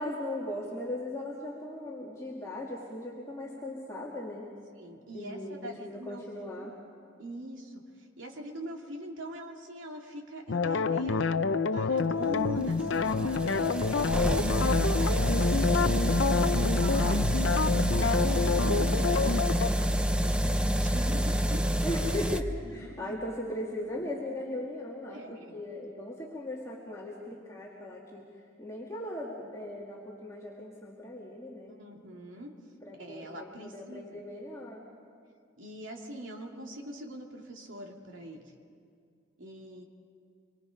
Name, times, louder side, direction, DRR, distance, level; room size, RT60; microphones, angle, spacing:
voice 1, 0.0-4.5 5.1-6.7 14.0-14.7 21.8-28.2 28.6-31.7 32.8-34.9, left 1 dB, 15° left, -5 dB, 2.2 m, -38 dB
voice 2, 4.7-6.2 6.5-6.7 7.2-11.3 11.7-13.7 14.3-21.8 22.6-23.2 25.1-25.6 31.7-32.5 32.9-34.2 35.6-38.5 39.4-39.8, right 1 dB, 80° right, 1 dB, 2.7 m, -43 dB
sound 1, 10.5-19.7, left 5 dB, 70° left, 0.6 m, -28 dB
sound 2, 12.1-22.4, equal, 5° right, 0.7 m, -28 dB
25.5 x 23.5 x 5.2 m, 2.3 s
head